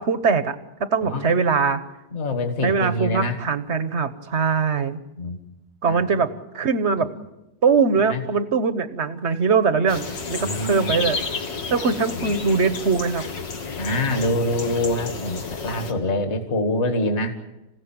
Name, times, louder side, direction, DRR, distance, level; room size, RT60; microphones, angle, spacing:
voice 1, 0.0-1.8 2.6-5.0 5.8-7.1 7.6-11.2 11.7-13.2, right 5 dB, 45° right, 12 dB, 1.2 m, -22 dB
voice 2, 2.1-3.4 5.2-5.4 5.8-6.2 8.1-8.2 10.4-10.9 12.1-12.3 13.8-17.4, left 1 dB, 40° left, 6 dB, 2.3 m, -25 dB
sound 1, 9.9-15.9, left 4 dB, 80° left, 2.7 m, -31 dB
27.0 x 16.0 x 8.9 m, 0.98 s
omnidirectional pair, 2.0 m